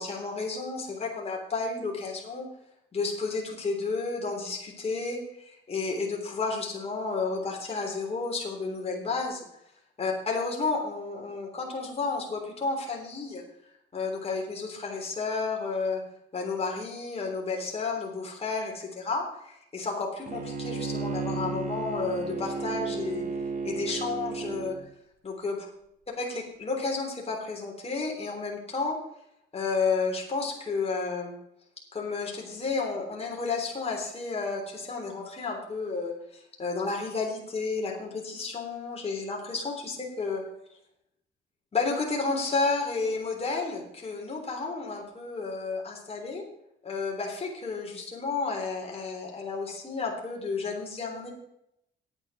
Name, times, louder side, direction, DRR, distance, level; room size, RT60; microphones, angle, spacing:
voice 1, 0.0-2.5 2.9-9.4 10.0-13.4 13.9-16.0 16.3-23.2 23.6-24.8 25.2-25.7 26.2-29.0 29.5-31.3 31.9-40.4 41.7-46.4 46.8-51.3, left 4 dB, 30° left, -1 dB, 3.4 m, -31 dB
Bowed string instrument, 20.3-24.8, right 3 dB, 40° right, 1.8 m, -33 dB
9.1 x 8.9 x 6.2 m, 0.78 s
cardioid pair, 90°, 20 cm